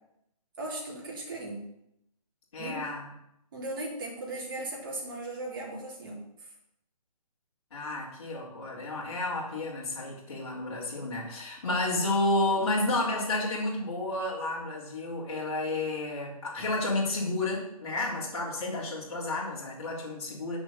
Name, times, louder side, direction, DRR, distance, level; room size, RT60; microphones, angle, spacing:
voice 1, 0.6-1.7 2.6-2.9 3.5-6.2, right 2 dB, 35° right, -3 dB, 3.2 m, -37 dB
voice 2, 2.5-3.1 7.7-20.6, left 2 dB, 45° left, -6 dB, 3.6 m, -31 dB
7.9 x 6.4 x 7.4 m, 0.80 s
hypercardioid pair, 170°, 20 cm